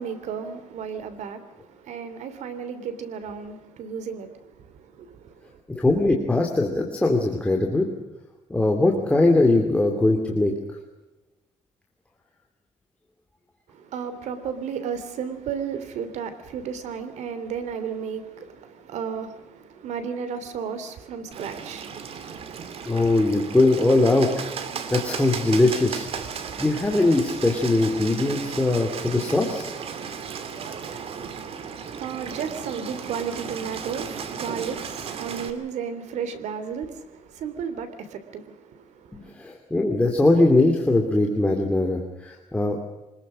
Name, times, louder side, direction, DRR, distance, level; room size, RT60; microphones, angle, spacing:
voice 1, 0.0-5.6 13.7-22.9 31.2-39.3, right 7 dB, 70° right, 3.1 m, -34 dB
voice 2, 5.7-7.9 8.5-10.5 22.8-24.4 24.9-26.1 26.6-29.7 39.3-42.8, left 2 dB, 10° left, 2.7 m, -21 dB
Bird, 21.3-35.5, right 6 dB, 50° right, 2.5 m, -35 dB
25.5 x 20.5 x 6.3 m
cardioid pair, 140°, 12 cm